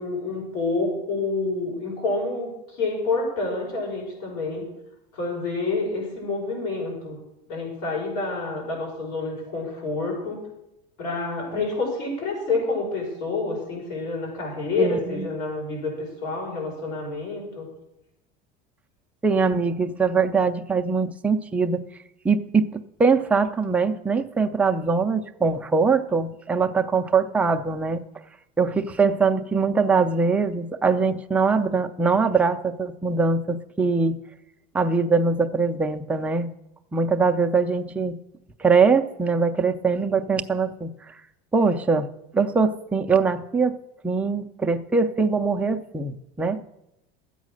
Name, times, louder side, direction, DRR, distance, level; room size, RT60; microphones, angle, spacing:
voice 1, 0.0-4.6 5.1-7.2 7.5-10.5 11.0-17.7, left 3 dB, 70° left, -1 dB, 5.9 m, -28 dB
voice 2, 14.8-15.3 19.2-21.8 22.2-28.0 28.6-34.2 34.7-36.5 36.9-38.2 38.6-41.2 41.5-43.8 44.0-46.6, right 4 dB, 5° right, 4 dB, 0.4 m, -22 dB
13.0 x 8.3 x 6.3 m, 0.86 s
cardioid pair, 165°, 21 cm